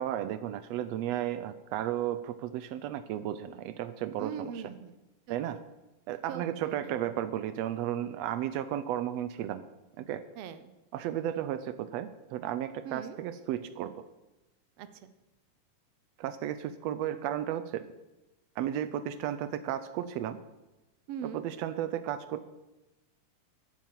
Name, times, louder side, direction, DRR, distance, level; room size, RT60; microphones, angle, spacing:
voice 1, 0.0-4.5 5.3-5.6 6.1-9.6 10.0-10.2 10.9-13.9 16.2-17.9 18.6-20.4 21.3-22.4, right 11 dB, 90° right, 11 dB, 1.4 m, -34 dB
voice 2, 4.2-5.0 5.3-5.4 6.3-6.9 10.4-10.7 12.8-13.2 14.8-15.1 21.1-21.4, right 8 dB, 75° right, 11 dB, 1.4 m, -41 dB
12.5 x 8.5 x 7.7 m, 1.0 s
omnidirectional pair, 3.7 m